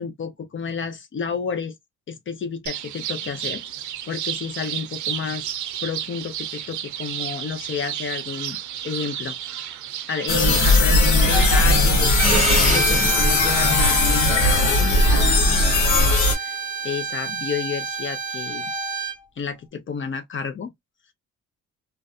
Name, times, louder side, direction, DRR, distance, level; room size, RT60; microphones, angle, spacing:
voice 1, 0.0-1.8 2.1-3.6 4.1-5.5 5.8-8.6 8.8-9.4 10.1-16.6 16.8-18.7 19.4-20.7, left 6 dB, 40° left, 0.6 m, -31 dB
sound 1, 2.7-13.1, right 11 dB, 75° right, 0.5 m, -32 dB
sound 2, 10.3-16.3, left 2 dB, 75° left, 1.0 m, -18 dB
Bowed string instrument, 12.2-19.2, right 4 dB, 25° right, 0.8 m, -27 dB
2.4 x 2.2 x 2.4 m
cardioid pair, 90°, 30 cm